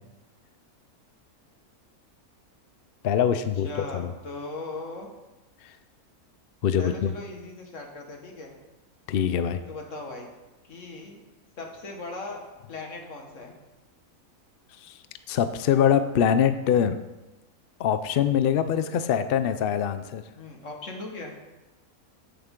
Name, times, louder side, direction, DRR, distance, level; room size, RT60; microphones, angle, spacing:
voice 1, 3.0-4.1 5.6-5.8 6.6-7.1 9.1-9.6 14.8-15.0 15.3-17.0 17.8-20.2, left 8 dB, 70° left, 11 dB, 0.5 m, -24 dB
voice 2, 3.6-5.1 6.8-8.5 9.7-10.3 10.6-11.2 11.6-13.6 20.4-21.4, left 2 dB, 55° left, 1 dB, 1.9 m, -38 dB
13.5 x 7.0 x 3.7 m, 1.1 s
omnidirectional pair, 1.6 m